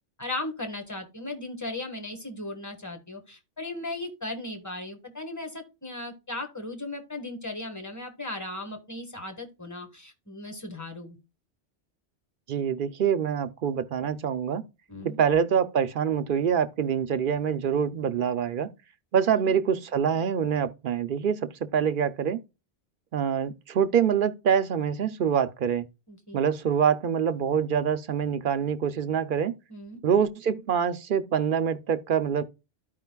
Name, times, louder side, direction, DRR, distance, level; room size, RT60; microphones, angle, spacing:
voice 1, 0.2-11.2 14.9-15.2 19.4-19.6 26.1-26.4 29.7-30.0, left 2 dB, 15° left, 1.3 m, -37 dB
voice 2, 12.5-14.6 15.0-18.7 19.1-22.4 23.1-25.9 26.3-29.5 30.0-32.4, right 7 dB, 60° right, 0.6 m, -25 dB
13.5 x 4.9 x 2.2 m
omnidirectional pair, 1.2 m